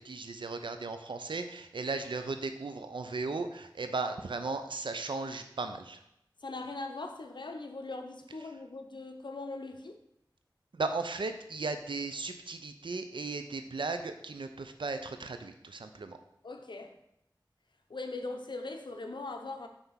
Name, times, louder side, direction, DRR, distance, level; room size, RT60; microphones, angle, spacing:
voice 1, 0.0-6.0 10.7-16.2, right 3 dB, 90° right, 8 dB, 0.5 m, -36 dB
voice 2, 6.4-10.0 16.4-16.9 17.9-19.7, left 3 dB, 70° left, 5 dB, 0.7 m, -40 dB
5.8 x 3.4 x 5.6 m, 0.80 s
wide cardioid pair, 45°, 8 cm